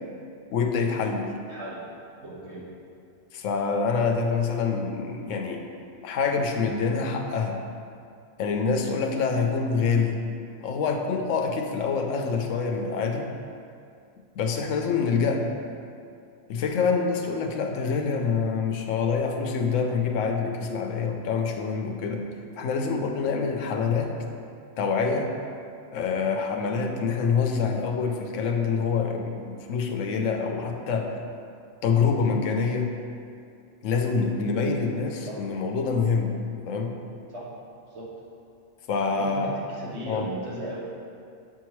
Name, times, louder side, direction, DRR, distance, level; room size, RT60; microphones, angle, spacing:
voice 1, 0.5-1.3 3.3-5.6 6.0-7.6 8.4-10.2 10.6-13.3 14.4-15.5 16.5-22.2 22.6-24.1 24.8-25.3 25.9-31.1 31.8-32.9 33.8-36.3 36.7-36.9 38.9-39.5 40.1-40.3, left 5 dB, 80° left, 3 dB, 0.9 m, -26 dB
voice 2, 1.5-1.8 2.2-2.6 26.6-26.8 35.3-35.4 37.3-37.5 37.9-38.1 39.0-40.8, right 1 dB, 60° right, -5 dB, 1.4 m, -37 dB
7.5 x 4.6 x 3.1 m, 2.4 s
omnidirectional pair, 1.3 m